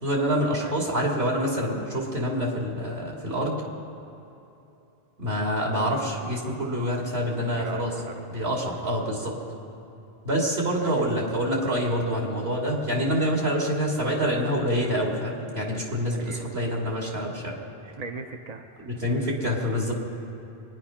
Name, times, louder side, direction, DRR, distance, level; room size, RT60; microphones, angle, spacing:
voice 1, 0.0-3.6 5.2-7.9 8.3-9.4 10.2-17.5 18.8-19.9, equal, 70° right, -2 dB, 3.0 m, -26 dB
voice 2, 7.5-8.5 10.8-11.1 16.2-16.7 17.8-18.9, right 3 dB, 45° right, 4 dB, 0.8 m, -40 dB
24.0 x 10.5 x 5.8 m, 2.9 s
omnidirectional pair, 1.1 m